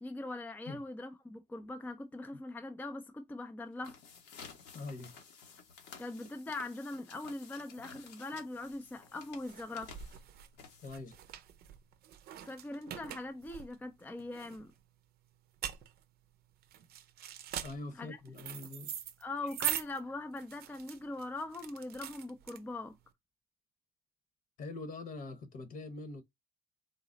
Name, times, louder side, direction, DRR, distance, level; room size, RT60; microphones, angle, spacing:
voice 1, 0.0-4.0 6.0-9.9 12.4-14.7 17.9-18.2 19.2-23.0, left 2 dB, 10° left, 0.5 m, -41 dB
sound 1, 3.7-11.2, left 6 dB, 80° left, 1.2 m, -54 dB
voice 2, 4.7-5.1 10.8-11.2 17.6-18.9 19.4-19.5 24.6-26.2, left 3 dB, 55° left, 1.1 m, -43 dB
sound 2, 8.6-23.0, right 11 dB, 65° right, 0.6 m, -43 dB
3.9 x 2.0 x 3.8 m
cardioid pair, 110°, 17 cm